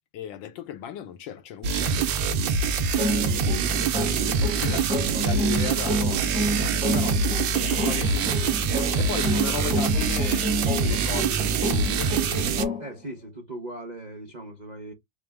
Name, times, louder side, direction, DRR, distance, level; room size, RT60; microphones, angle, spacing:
voice 1, 0.1-2.2 3.2-3.8 4.3-10.5 10.8-12.8, left 9 dB, 75° left, 1.4 m, -37 dB
sound 1, 1.6-12.6, right 5 dB, 80° right, 1.4 m, -25 dB
sound 2, 3.0-12.9, equal, 5° right, 0.9 m, -30 dB
voice 2, 12.8-14.9, right 1 dB, 60° right, 0.4 m, -39 dB
5.1 x 2.1 x 3.4 m
omnidirectional pair, 2.1 m